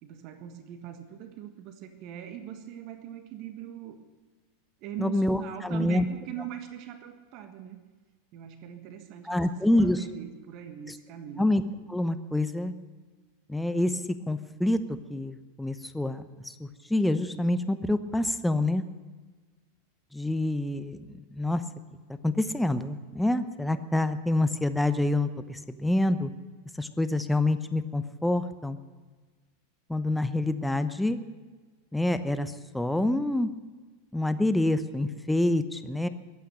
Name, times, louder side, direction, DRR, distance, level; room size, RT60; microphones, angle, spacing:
voice 1, 0.0-4.0 4.8-7.8 8.3-11.5, right 9 dB, 50° right, 8 dB, 1.5 m, -41 dB
voice 2, 5.0-6.1 9.3-10.0 11.4-11.6 11.9-12.7 13.5-14.0 14.3-14.8 15.1-18.8 20.1-21.6 22.2-26.3 26.8-28.8 29.9-31.2 31.9-33.5 34.1-36.1, left 1 dB, 5° left, 11 dB, 0.9 m, -27 dB
22.0 x 9.4 x 6.6 m, 1.3 s
figure-of-eight pair, 90°, 0 cm